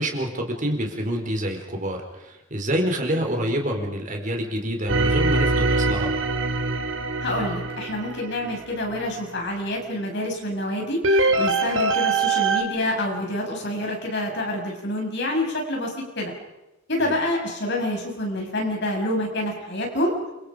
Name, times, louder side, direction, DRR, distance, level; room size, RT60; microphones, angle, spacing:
voice 1, 0.0-6.1 17.0-17.2, equal, 40° right, 2 dB, 4.5 m, -27 dB
sound 1, 4.9-9.0 11.0-12.6, right 3 dB, 75° right, 2.3 m, -23 dB
voice 2, 7.2-16.3 16.9-20.1, left 1 dB, 60° left, 0 dB, 7.1 m, -27 dB
29.0 x 26.0 x 5.2 m, 1.0 s
head